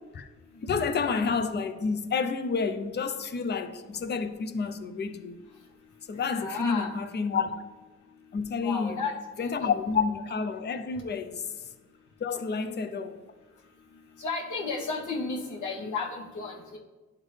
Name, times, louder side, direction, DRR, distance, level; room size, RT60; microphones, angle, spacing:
voice 1, 0.6-5.4 6.1-7.5 8.3-9.0 9.4-11.7 12.2-13.2, left 5 dB, 35° left, 0.5 m, -29 dB
voice 2, 6.3-6.9 8.6-9.5 14.2-16.8, left 4 dB, 70° left, 1.2 m, -33 dB
11.0 x 3.7 x 3.2 m
cardioid pair, 100°, 31 cm